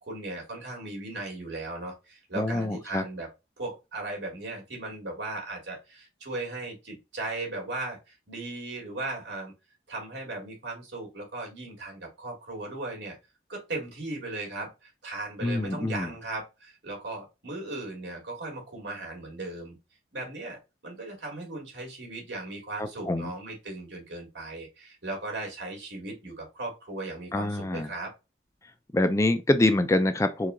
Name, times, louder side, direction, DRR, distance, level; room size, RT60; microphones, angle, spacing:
voice 1, 0.0-3.3 3.6-9.5 9.9-13.2 13.5-19.8 20.1-28.1, right 2 dB, 85° right, 2.2 m, -37 dB
voice 2, 2.4-3.0 15.4-16.1 22.8-23.3 27.3-27.9 28.9-30.5, left 2 dB, 15° left, 0.4 m, -25 dB
4.6 x 2.4 x 3.7 m
head